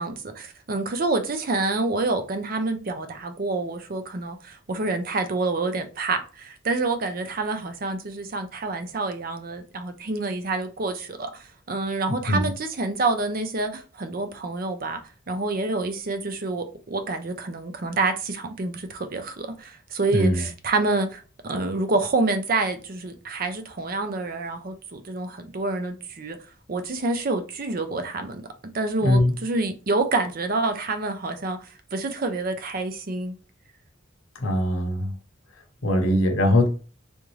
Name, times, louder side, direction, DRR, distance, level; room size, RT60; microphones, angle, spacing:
voice 1, 0.0-15.0 15.3-26.4 26.7-28.4 28.7-33.3, right 3 dB, 45° right, 0.5 m, -27 dB
voice 2, 20.1-20.5 29.0-29.3 34.4-35.1 35.8-36.7, left 1 dB, 85° left, 0.8 m, -21 dB
3.5 x 2.6 x 3.1 m
head